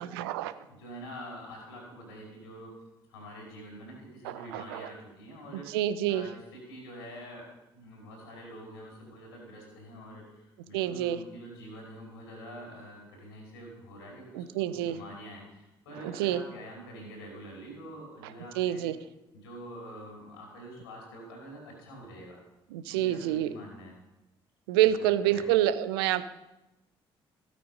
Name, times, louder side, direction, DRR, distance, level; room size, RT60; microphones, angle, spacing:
voice 1, 0.0-0.5 4.2-4.9 5.7-6.3 10.7-11.2 14.3-15.0 16.0-16.4 18.6-18.9 22.7-23.5 24.7-26.2, right 12 dB, 75° right, 13 dB, 0.8 m, -27 dB
voice 2, 0.7-2.7 3.1-5.7 6.1-18.9 19.3-22.4 22.9-24.0 24.8-25.5, equal, 80° left, 1 dB, 4.9 m, -46 dB
15.5 x 8.8 x 5.4 m, 0.95 s
figure-of-eight pair, 45°, 13 cm